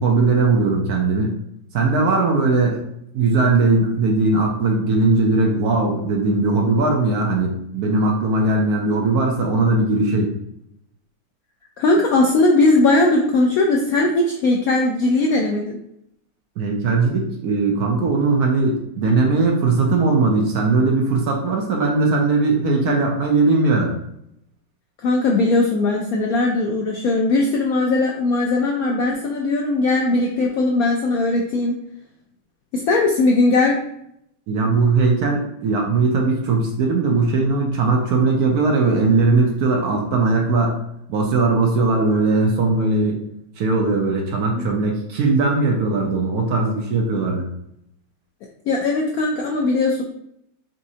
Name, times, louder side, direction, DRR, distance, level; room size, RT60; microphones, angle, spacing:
voice 1, 0.0-1.3 1.7-2.8 3.1-10.3 16.6-23.9 34.5-40.8 41.1-43.2 43.6-47.4, right 3 dB, 65° right, 0 dB, 1.0 m, -19 dB
voice 2, 11.8-15.8 25.0-31.8 32.7-33.8 44.5-44.7 48.7-50.0, left 2 dB, 75° left, 0 dB, 0.8 m, -19 dB
4.2 x 3.5 x 2.7 m, 0.77 s
omnidirectional pair, 2.0 m